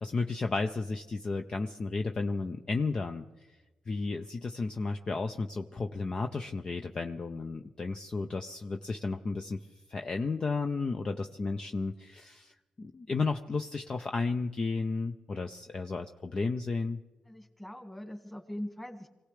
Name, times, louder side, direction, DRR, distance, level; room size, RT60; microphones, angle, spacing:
voice 1, 0.0-3.3 3.9-9.6 9.9-12.5 12.8-17.0, left 3 dB, 35° left, 5 dB, 0.6 m, -33 dB
voice 2, 17.2-19.1, left 1 dB, 10° left, 5 dB, 1.9 m, -41 dB
25.5 x 17.0 x 3.3 m, 1.2 s
cardioid pair, 100°, 2 cm